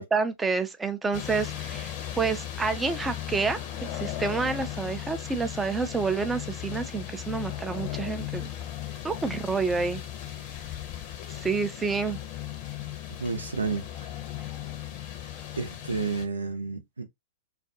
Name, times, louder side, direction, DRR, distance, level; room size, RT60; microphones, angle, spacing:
voice 1, 0.0-8.5 9.0-10.0 11.3-12.2, right 4 dB, 10° right, 0.5 m, -29 dB
sound 1, 1.1-16.3, left 11 dB, 40° left, 0.7 m, -37 dB
voice 2, 13.2-13.9 15.6-17.0, right 4 dB, 80° right, 0.7 m, -30 dB
2.4 x 2.2 x 2.7 m
figure-of-eight pair, 105°, 0 cm